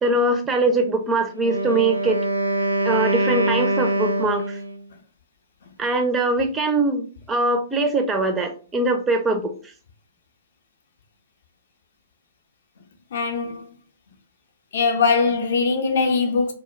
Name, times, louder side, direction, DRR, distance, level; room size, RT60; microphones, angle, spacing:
voice 1, 0.0-2.2 2.8-4.6 5.8-9.5, right 2 dB, 15° right, 0.4 m, -22 dB
Wind instrument woodwind instrument, 1.3-4.8, right 1 dB, 85° right, 0.3 m, -24 dB
voice 2, 13.1-13.6 14.7-16.5, left 4 dB, 55° left, 0.5 m, -21 dB
2.1 x 2.0 x 3.0 m
figure-of-eight pair, 115°, 0 cm